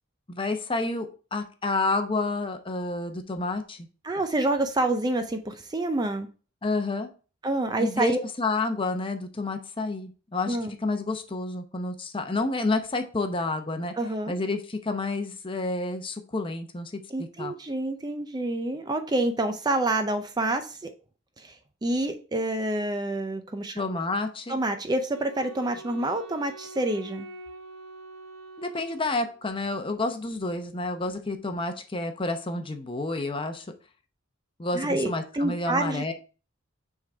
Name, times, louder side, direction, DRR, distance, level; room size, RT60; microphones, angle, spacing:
voice 1, 0.3-3.9 6.6-7.1 7.8-13.9 14.3-17.0 17.4-17.5 23.8-24.6 28.6-33.7 34.6-36.1, left 2 dB, 25° left, 6 dB, 0.7 m, -29 dB
voice 2, 4.0-6.3 7.4-8.2 10.5-10.7 14.0-14.4 17.1-20.9 21.4-21.6 21.8-23.8 24.5-27.3 34.7-36.1, right 2 dB, 20° right, 7 dB, 0.5 m, -28 dB
Wind instrument woodwind instrument, 25.1-29.5, right 2 dB, 80° right, 0.9 m, -45 dB
6.2 x 3.7 x 4.4 m, 0.35 s
head